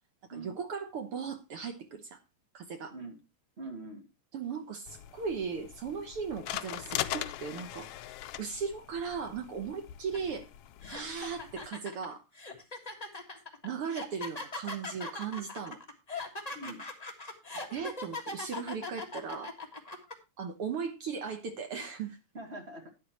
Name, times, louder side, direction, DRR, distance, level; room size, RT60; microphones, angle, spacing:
voice 1, 0.3-2.2 2.5-2.9 4.3-7.9 8.4-10.5 10.9-12.2 13.6-15.8 17.5-19.5 20.4-22.2, right 6 dB, 60° right, 6 dB, 1.7 m, -37 dB
voice 2, 3.6-4.1 16.5-16.8 22.3-22.9, right 2 dB, 25° right, 3 dB, 2.1 m, -43 dB
sound 1, 4.9-11.7, left 13 dB, 85° left, 1.3 m, -41 dB
sound 2, 10.1-10.3 10.8-20.1, left 2 dB, 20° left, 1.1 m, -40 dB
12.5 x 9.9 x 2.9 m, 0.26 s
omnidirectional pair, 3.5 m